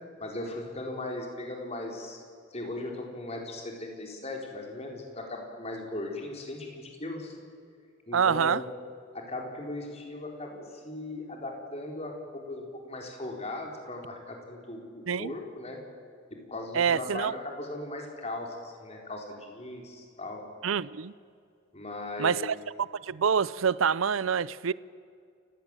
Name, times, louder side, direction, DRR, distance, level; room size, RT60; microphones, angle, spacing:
voice 1, 0.2-2.2 2.5-7.4 8.1-8.7 9.1-15.8 16.3-20.5 21.7-22.5, left 2 dB, 30° left, 4.3 m, -38 dB
voice 2, 8.1-8.6 15.1-15.3 16.7-17.3 20.6-21.1 22.2-22.5 23.1-24.7, right 7 dB, 80° right, 0.5 m, -26 dB
29.0 x 16.0 x 9.0 m
head